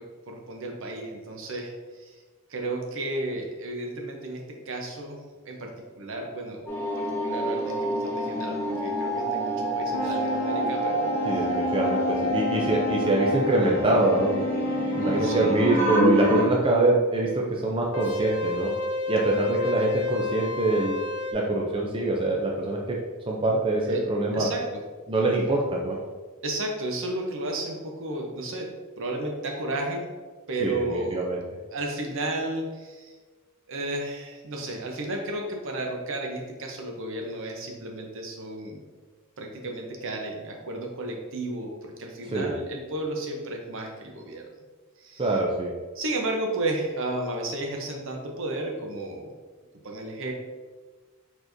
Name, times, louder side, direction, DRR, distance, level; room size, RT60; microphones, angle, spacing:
voice 1, 0.3-1.7 2.0-2.2 2.5-5.2 5.4-5.7 6.0-6.6 7.0-11.1 15.0-15.6 23.9-24.0 24.3-24.8 26.4-30.1 30.5-31.2 31.7-33.1 33.7-38.8 39.4-44.4 45.0-45.2 45.9-49.3 49.8-50.3, right 2 dB, 60° right, 1 dB, 0.8 m, -33 dB
sound 1, 6.7-16.4, right 1 dB, 10° left, 0.7 m, -27 dB
sound 2, 9.9-16.0 17.9-21.3, left 3 dB, 85° left, 0.6 m, -31 dB
voice 2, 11.2-14.4 15.0-18.7 19.1-21.0 21.3-23.0 23.3-24.5 25.1-26.0 30.6-31.4 42.3-42.6 45.2-45.7, right 2 dB, 25° right, -2 dB, 0.4 m, -24 dB
4.4 x 4.4 x 2.6 m, 1.4 s
head